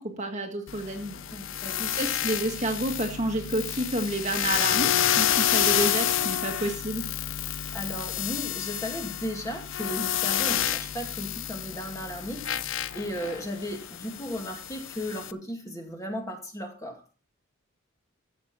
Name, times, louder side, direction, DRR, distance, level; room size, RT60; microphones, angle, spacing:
voice 1, 0.0-1.2 1.8-4.9 5.2-7.1, right 1 dB, 35° right, 3 dB, 1.8 m, -30 dB
sound 1, 0.7-15.3, left 10 dB, 60° left, 0.7 m, -29 dB
voice 2, 1.3-1.9 7.7-17.0, equal, 15° left, 1 dB, 2.2 m, -35 dB
15.0 x 6.6 x 4.3 m, 0.36 s
head